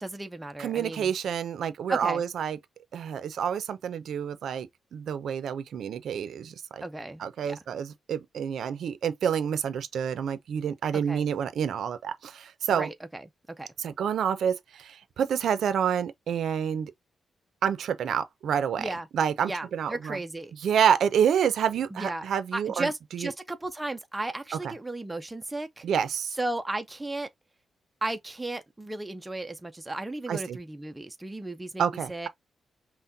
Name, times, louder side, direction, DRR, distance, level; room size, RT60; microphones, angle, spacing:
voice 1, 0.0-1.1 1.9-2.2 6.8-7.6 10.9-11.3 12.8-13.2 13.6-13.7 18.8-19.1 19.4-20.5 21.9-22.3 22.5-25.8 26.4-27.3 28.0-31.8 32.1-32.3, right 2 dB, 10° right, 0.4 m, -34 dB
voice 2, 0.6-2.6 2.9-6.8 7.2-12.9 13.8-16.9 17.6-20.2 20.6-23.3 24.6-24.7 25.8-26.4 30.3-30.6 31.8-32.3, right 8 dB, 65° right, 0.5 m, -28 dB
5.7 x 2.2 x 2.6 m
wide cardioid pair, 175°, 0 cm